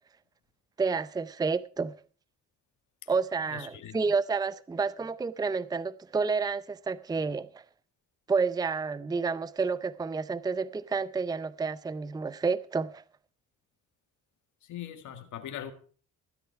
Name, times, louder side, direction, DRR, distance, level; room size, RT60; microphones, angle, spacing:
voice 1, 0.8-2.0 3.1-7.6 8.3-13.0, right 4 dB, 15° right, 0.5 m, -30 dB
voice 2, 3.5-4.0 14.6-15.7, left 10 dB, 75° left, 1.8 m, -41 dB
15.5 x 10.0 x 4.6 m
cardioid pair, 90°, 30 cm